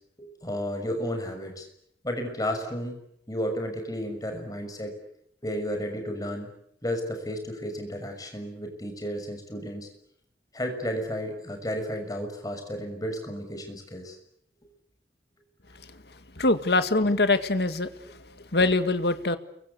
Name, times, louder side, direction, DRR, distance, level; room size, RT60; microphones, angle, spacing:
voice 1, 0.2-1.7 2.0-3.0 3.3-4.9 5.4-6.5 6.8-9.9 10.5-14.2, equal, 20° left, 5 dB, 6.4 m, -32 dB
voice 2, 16.4-17.9 18.5-19.4, left 2 dB, 70° left, 10 dB, 2.0 m, -23 dB
30.0 x 24.0 x 8.3 m, 0.72 s
head